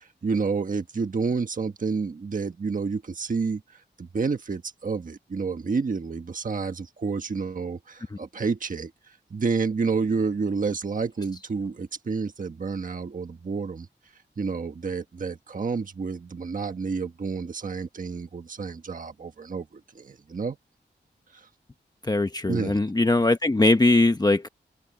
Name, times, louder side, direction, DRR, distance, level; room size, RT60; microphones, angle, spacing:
voice 1, 0.0-13.9 14.4-19.7 19.9-20.6 21.3-21.5 22.4-22.8, right 4 dB, 45° right, 1.3 m, -29 dB
voice 2, 22.0-24.5, left 2 dB, 20° left, 1.0 m, -21 dB
open air
wide cardioid pair, 120°, 19 cm